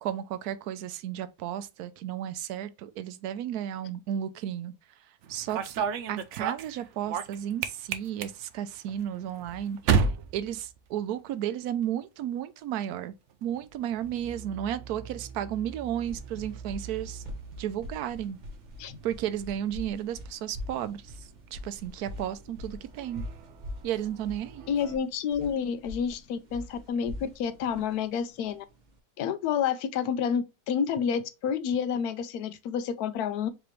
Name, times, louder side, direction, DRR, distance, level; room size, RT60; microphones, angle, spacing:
voice 1, 0.0-4.7 5.3-10.1 10.3-13.1 13.4-17.2 17.6-18.4 19.0-23.2 23.8-24.6, right 10 dB, 85° right, 1.1 m, -33 dB
sound 1, 5.2-11.4 11.7-12.2 13.3-25.0, right 6 dB, 65° right, 0.8 m, -36 dB
sound 2, 15.7-29.0, left 1 dB, 35° right, 0.9 m, -43 dB
voice 2, 24.7-28.6 29.2-33.5, left 7 dB, 85° left, 1.1 m, -29 dB
4.8 x 3.0 x 3.1 m
omnidirectional pair, 1.6 m